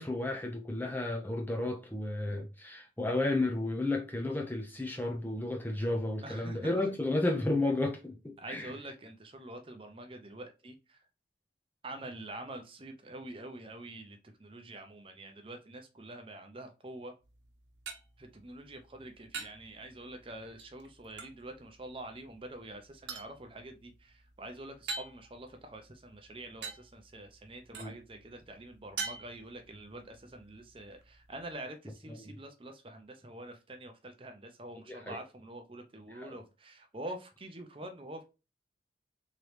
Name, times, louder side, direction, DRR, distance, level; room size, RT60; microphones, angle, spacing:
voice 1, 0.0-8.7 27.7-27.9 32.1-32.3 34.9-35.2 36.1-36.3, left 2 dB, 10° left, 0.5 m, -32 dB
voice 2, 6.2-6.7 8.4-11.0 11.8-17.1 18.2-38.2, right 1 dB, 30° right, 0.6 m, -46 dB
sound 1, 17.2-31.6, right 4 dB, 75° right, 1.1 m, -47 dB
3.8 x 3.1 x 3.2 m
head